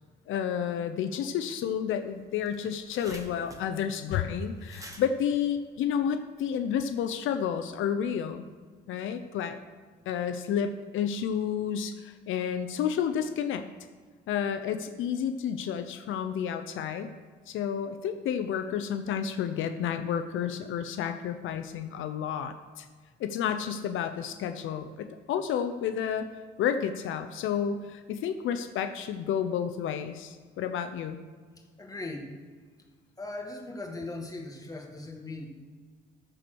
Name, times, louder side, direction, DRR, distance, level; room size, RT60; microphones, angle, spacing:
voice 1, 0.3-8.4 8.9-9.6 10.1-13.6 14.3-17.1 17.5-22.9 23.2-26.3 26.6-31.2, left 8 dB, 80° left, 8 dB, 0.7 m, -31 dB
sound 1, 1.9-2.0 2.2-6.5, right 1 dB, 15° right, 1.5 m, -50 dB
voice 2, 31.6-32.3 33.2-35.5, left 2 dB, 20° left, 1 dB, 1.9 m, -39 dB
13.5 x 4.6 x 6.2 m, 1.5 s
cardioid pair, 90°, 20 cm